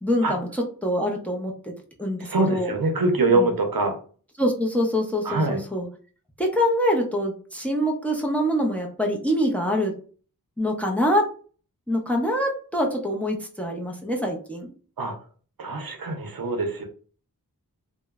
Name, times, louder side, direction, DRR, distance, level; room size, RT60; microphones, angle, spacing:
voice 1, 0.0-1.7 2.0-2.7 3.3-3.5 4.4-5.9 6.4-9.9 10.6-11.3 11.9-14.7, equal, 5° left, 2 dB, 0.5 m, -25 dB
voice 2, 2.2-4.0 5.2-5.6 15.0-15.1 15.6-16.8, right 2 dB, 65° right, 5 dB, 0.6 m, -24 dB
2.9 x 2.1 x 2.3 m, 0.40 s
wide cardioid pair, 60°, 37 cm